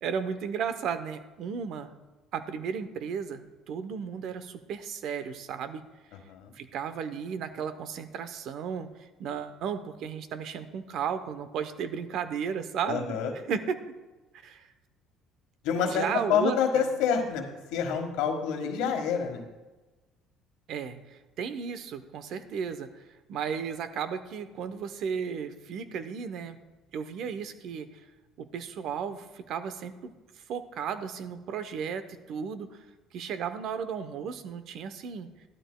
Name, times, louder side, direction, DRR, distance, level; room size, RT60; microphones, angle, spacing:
voice 1, 0.0-1.9 2.3-5.8 6.5-13.2 13.5-13.9 14.4-14.7 15.8-16.9 20.7-22.9 23.3-26.6 26.9-28.0 28.4-32.8 33.1-35.3, right 7 dB, 65° right, 11 dB, 0.7 m, -34 dB
voice 2, 12.9-13.3 15.6-17.4 17.7-19.4, left 7 dB, 80° left, 4 dB, 1.4 m, -27 dB
13.5 x 12.0 x 2.2 m, 1.2 s
supercardioid pair, 90°, 0 cm